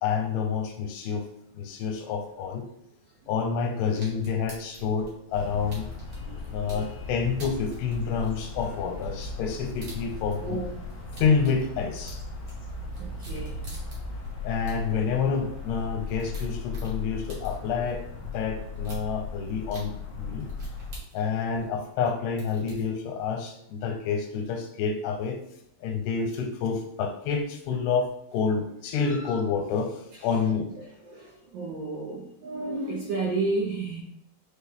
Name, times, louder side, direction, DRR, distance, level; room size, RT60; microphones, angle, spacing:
voice 1, 0.0-1.3 1.5-2.7 3.3-5.9 6.5-10.6 11.2-12.2 14.4-18.0 18.3-20.5 21.1-25.4 25.8-30.7, left 6 dB, 85° left, 4 dB, 2.8 m, -28 dB
sound 1, 4.0-6.9 7.4-10.6 10.9-14.3 14.7-14.8 15.0-15.1 15.3-15.4 15.8-17.9 18.8-19.0 19.7-19.8 20.4-22.1 22.4-22.8, right 4 dB, 60° right, 1.4 m, -44 dB
sound 2, 5.3-21.0, left 4 dB, 70° left, 1.2 m, -37 dB
voice 2, 10.4-10.7 13.0-13.6 29.0-29.3 31.1-34.0, right 3 dB, 80° right, -4 dB, 1.9 m, -32 dB
6.4 x 2.2 x 3.5 m, 0.77 s
omnidirectional pair, 4.6 m